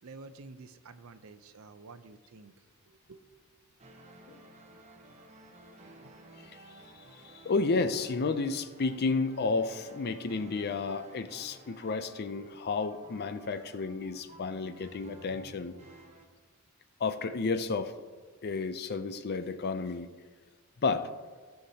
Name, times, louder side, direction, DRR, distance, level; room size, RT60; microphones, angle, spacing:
voice 1, 0.0-2.5 2.9-3.2, right 3 dB, 70° right, 10 dB, 0.6 m, -50 dB
sound 1, 3.8-16.3, right 2 dB, 30° right, 1.0 m, -54 dB
voice 2, 7.1-15.7 17.0-17.9 18.4-20.1 20.8-21.1, left 4 dB, 45° left, 11 dB, 0.5 m, -32 dB
16.0 x 5.8 x 2.8 m, 1.5 s
head